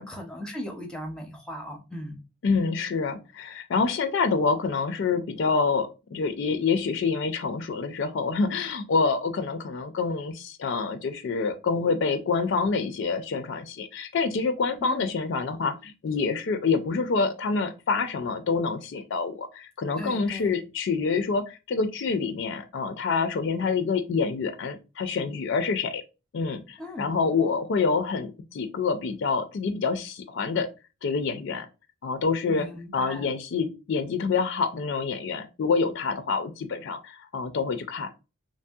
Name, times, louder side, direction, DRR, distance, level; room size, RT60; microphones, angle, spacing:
voice 1, 0.0-2.2 14.8-15.1 20.0-20.6 26.8-27.1 32.5-33.3, equal, 5° left, 0.5 m, -37 dB
voice 2, 2.4-26.0 26.3-30.7 31.0-31.7 32.0-32.7 32.9-38.2, left 4 dB, 60° left, 0.4 m, -27 dB
3.0 x 2.6 x 2.2 m
head